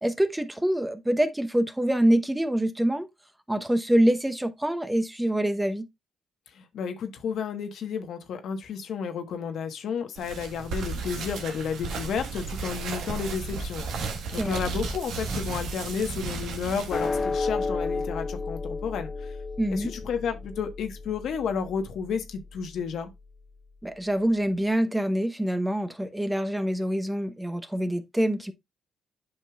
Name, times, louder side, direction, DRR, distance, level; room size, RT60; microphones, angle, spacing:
voice 1, 0.0-3.1 3.5-5.9 14.4-14.6 19.6-19.9 23.8-28.5, right 1 dB, 10° right, 0.9 m, -25 dB
voice 2, 6.5-19.3 19.7-23.1, left 6 dB, 70° left, 1.2 m, -32 dB
sound 1, 10.2-17.2, right 4 dB, 80° right, 1.4 m, -34 dB
sound 2, 16.9-23.4, left 3 dB, 35° left, 0.9 m, -33 dB
8.9 x 5.4 x 2.3 m
supercardioid pair, 60°, 0 cm